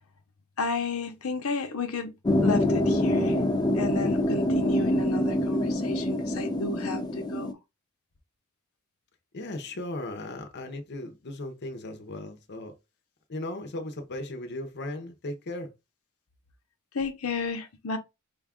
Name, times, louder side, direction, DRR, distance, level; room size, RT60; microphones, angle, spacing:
voice 1, 0.6-2.1 2.4-3.4 3.7-7.6 16.9-18.0, left 4 dB, 85° left, 0.8 m, -33 dB
sound 1, 2.3-7.5, left 1 dB, 20° left, 0.4 m, -25 dB
voice 2, 9.3-12.7 13.3-15.7, left 1 dB, 50° left, 0.7 m, -37 dB
5.1 x 2.4 x 3.6 m
head